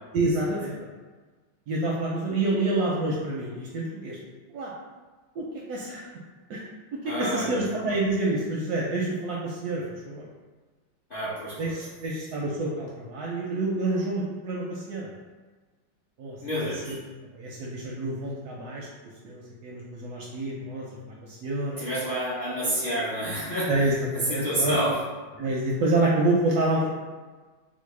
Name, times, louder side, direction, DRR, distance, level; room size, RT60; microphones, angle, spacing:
voice 1, 0.1-0.7 1.7-4.2 4.5-4.7 5.4-6.1 6.5-6.6 6.9-10.2 11.6-15.1 16.2-16.4 16.9-17.0 17.3-18.9 19.2-21.8 22.8-22.9 23.7-24.8 25.4-26.9, right 2 dB, 75° right, -4 dB, 0.9 m, -28 dB
voice 2, 7.0-7.6 11.1-11.8 16.4-17.0 21.8-23.7 24.3-24.9, equal, 50° left, -10 dB, 0.6 m, -29 dB
4.2 x 2.0 x 3.1 m, 1.4 s
omnidirectional pair, 2.0 m